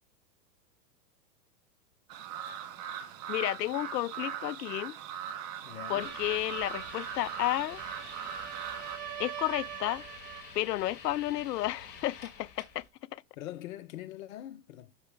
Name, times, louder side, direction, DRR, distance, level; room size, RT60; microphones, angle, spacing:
sound 1, 2.1-9.0, right 9 dB, 25° right, 0.5 m, -40 dB
voice 1, 3.3-4.9 5.9-7.8 9.2-10.0 10.6-12.8, left 15 dB, 75° left, 0.6 m, -32 dB
voice 2, 5.6-6.3 13.4-14.9, left 13 dB, 55° left, 1.1 m, -43 dB
sound 2, 5.7-10.6, right 13 dB, 80° right, 0.7 m, -44 dB
sound 3, 6.0-12.9, left 6 dB, 20° left, 2.0 m, -49 dB
5.8 x 5.6 x 3.4 m
hypercardioid pair, 130°, 49 cm